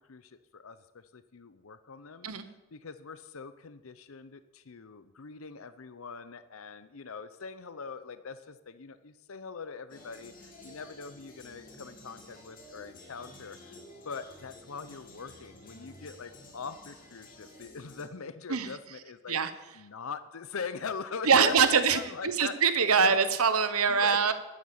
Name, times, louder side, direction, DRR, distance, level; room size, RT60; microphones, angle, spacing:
voice 1, 0.1-13.8 14.0-19.4 19.7-22.5 23.0-23.2 23.9-24.3, left 5 dB, 70° left, 13 dB, 0.7 m, -42 dB
sound 1, 9.9-18.0, left 1 dB, 40° left, 2.6 m, -52 dB
voice 2, 21.2-24.3, right 6 dB, 90° right, 11 dB, 1.1 m, -24 dB
12.5 x 9.7 x 7.1 m, 1.1 s
head